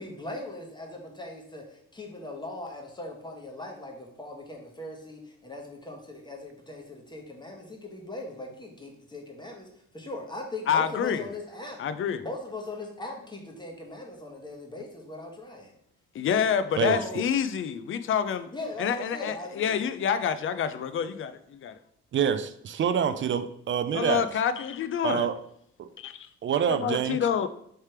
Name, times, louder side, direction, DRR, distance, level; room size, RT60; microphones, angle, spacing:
voice 1, 0.0-9.7 9.9-11.8 12.2-15.7 16.8-17.2 18.5-19.8, left 2 dB, 15° left, 1.0 m, -39 dB
voice 2, 10.7-11.2 11.8-12.2 16.1-18.5 18.8-21.8 23.9-25.3 26.0-26.3 26.7-27.5, left 7 dB, 45° left, 0.4 m, -27 dB
voice 3, 22.1-24.2 25.0-25.4 25.8-25.9 26.4-27.2, right 8 dB, 40° right, 0.4 m, -26 dB
3.3 x 3.3 x 4.3 m
cardioid pair, 90°, 30 cm